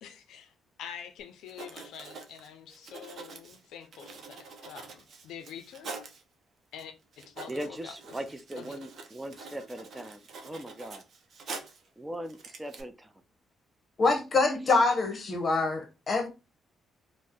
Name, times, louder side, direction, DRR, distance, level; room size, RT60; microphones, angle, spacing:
voice 1, 0.0-5.9 6.7-8.0 8.6-8.7, left 8 dB, 80° left, 0.4 m, -46 dB
Writing, 1.2-1.3 1.5-6.2 6.8-6.9 7.1-11.9 12.3-12.8, right 4 dB, 60° right, 0.6 m, -45 dB
voice 2, 7.5-11.0 12.0-13.1, right 1 dB, 15° right, 0.3 m, -39 dB
voice 3, 14.0-16.3, left 3 dB, 40° left, 0.8 m, -25 dB
2.6 x 2.0 x 3.5 m
cardioid pair, 90°, 0 cm